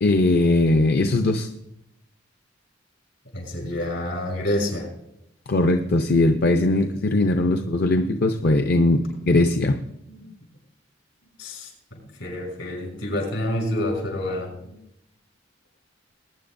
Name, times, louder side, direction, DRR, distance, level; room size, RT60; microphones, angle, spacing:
voice 1, 0.0-1.5 5.5-9.8, left 2 dB, 55° left, 6 dB, 0.6 m, -20 dB
voice 2, 3.3-4.9 10.1-10.2 11.4-14.8, left 1 dB, 80° left, 0 dB, 5.7 m, -28 dB
21.0 x 9.7 x 2.6 m, 0.79 s
head